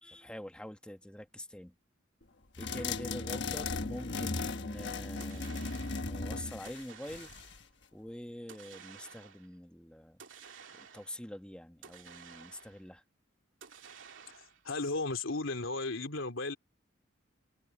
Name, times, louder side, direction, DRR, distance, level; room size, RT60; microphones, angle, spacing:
voice 1, 0.0-1.7 2.6-7.3 7.9-10.2 10.8-13.0, left 1 dB, 5° left, 1.1 m, -45 dB
sound 1, 2.6-7.6, left 3 dB, 60° left, 1.3 m, -37 dB
sound 2, 5.2-6.2 6.6-7.7 8.5-9.5 10.2-11.3 11.8-12.9 13.6-14.7, right 6 dB, 70° right, 2.6 m, -53 dB
voice 2, 14.6-16.6, left 3 dB, 90° left, 3.1 m, -35 dB
head